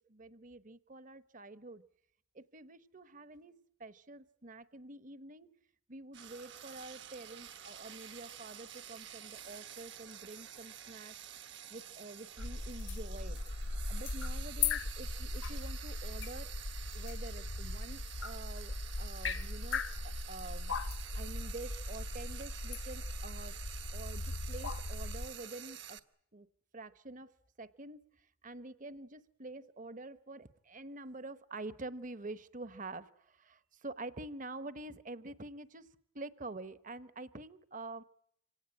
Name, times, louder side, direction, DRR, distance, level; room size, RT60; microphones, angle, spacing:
voice 1, 0.1-1.8 2.3-5.5 5.9-11.1 11.7-13.4 13.9-16.5 16.9-20.8 21.1-23.6 23.9-26.0 26.3-26.5 26.7-35.9 36.1-38.0, right 2 dB, 40° right, 13 dB, 1.1 m, -47 dB
Frying (food), 6.1-26.0, right 10 dB, 55° right, 1.2 m, -49 dB
sound 1, 12.4-25.3, left 3 dB, 60° left, 1.1 m, -38 dB
26.5 x 17.5 x 9.8 m, 0.71 s
head